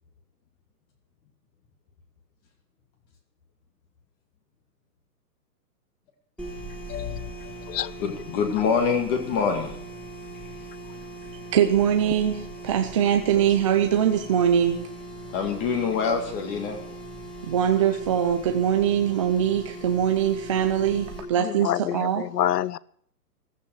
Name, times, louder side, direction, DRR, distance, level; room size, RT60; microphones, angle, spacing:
sound 1, 6.4-21.2, right 2 dB, ahead, 2.7 m, -40 dB
voice 1, 8.0-9.7 15.3-16.8, left 6 dB, 25° left, 2.2 m, -25 dB
voice 2, 11.5-14.9 17.4-22.2, right 9 dB, 20° right, 0.5 m, -22 dB
voice 3, 21.4-22.8, left 11 dB, 75° left, 0.8 m, -27 dB
15.0 x 14.0 x 6.4 m
hypercardioid pair, 150°, 48 cm